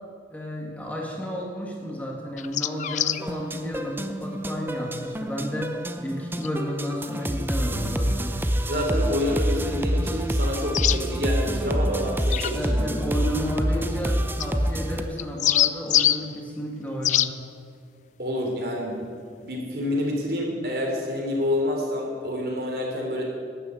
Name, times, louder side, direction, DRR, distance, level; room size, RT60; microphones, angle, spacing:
voice 1, 0.3-5.7 6.0-8.4 12.5-17.4, equal, 10° left, -2 dB, 1.8 m, -32 dB
sound 1, 2.4-3.2 6.4-6.5 10.7-11.0 12.3-12.5 14.4-14.5 15.2-16.2 17.0-17.3, left 11 dB, 40° left, 0.3 m, -23 dB
sound 2, 3.2-15.0, equal, 10° right, 0.6 m, -27 dB
voice 2, 8.7-12.7 18.2-19.1 19.4-23.2, left 1 dB, 60° right, 0 dB, 3.4 m, -28 dB
12.0 x 10.0 x 8.7 m, 2.3 s
head